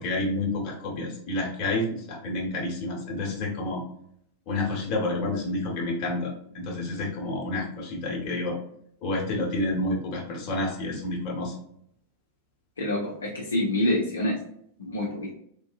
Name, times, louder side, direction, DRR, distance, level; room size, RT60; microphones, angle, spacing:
voice 1, 0.0-3.8 4.5-8.6 9.0-11.6, left 2 dB, 40° left, -1 dB, 1.1 m, -29 dB
voice 2, 12.8-14.4 14.8-15.3, left 1 dB, 70° left, -2 dB, 0.7 m, -26 dB
3.6 x 2.6 x 2.3 m, 0.68 s
figure-of-eight pair, 90°, 0 cm